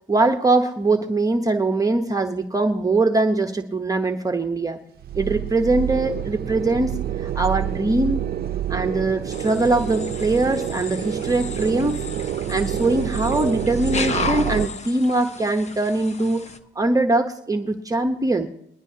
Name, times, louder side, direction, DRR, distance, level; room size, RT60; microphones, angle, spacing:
voice 1, 0.1-4.8 5.1-8.3 8.7-12.0 12.5-16.4 16.8-18.5, right 2 dB, 15° right, 5 dB, 0.9 m, -22 dB
sound 1, 5.0-14.7, right 11 dB, 50° right, 0.5 m, -28 dB
sound 2, 9.3-16.6, left 4 dB, 35° left, 1.0 m, -34 dB
21.0 x 12.0 x 2.8 m, 0.76 s
cardioid pair, 90°, 20 cm